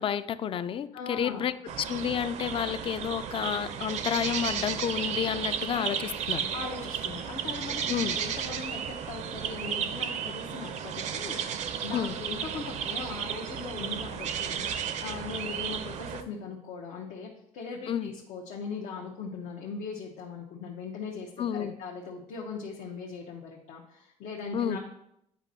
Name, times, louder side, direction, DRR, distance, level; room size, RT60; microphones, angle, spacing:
voice 1, 0.0-1.5 1.9-6.5 7.9-8.2 11.9-12.2 17.9-18.1 21.4-21.7 24.5-24.8, left 9 dB, 45° left, 14 dB, 0.4 m, -30 dB
voice 2, 0.9-1.5 6.5-24.8, left 5 dB, 85° left, -1 dB, 0.9 m, -40 dB
sound 1, 1.7-16.2, right 8 dB, 65° right, 0.5 m, -34 dB
9.0 x 5.1 x 2.7 m, 0.77 s
cardioid pair, 105°, 13 cm